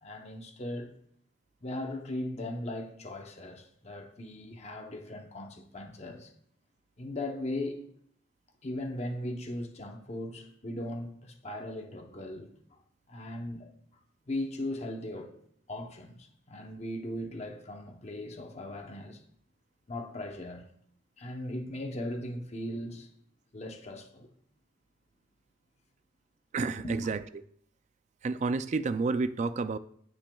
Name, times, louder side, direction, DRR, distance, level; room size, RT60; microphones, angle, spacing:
voice 1, 0.0-0.9 1.6-6.3 7.0-7.8 8.6-12.8 13.1-13.7 14.3-15.4 15.7-19.2 19.9-20.6 21.2-23.1 23.5-24.3 26.8-27.1, left 1 dB, 35° left, 0.8 m, -38 dB
voice 2, 26.5-27.2 28.2-29.8, right 4 dB, 35° right, 0.3 m, -30 dB
16.5 x 6.1 x 2.3 m
head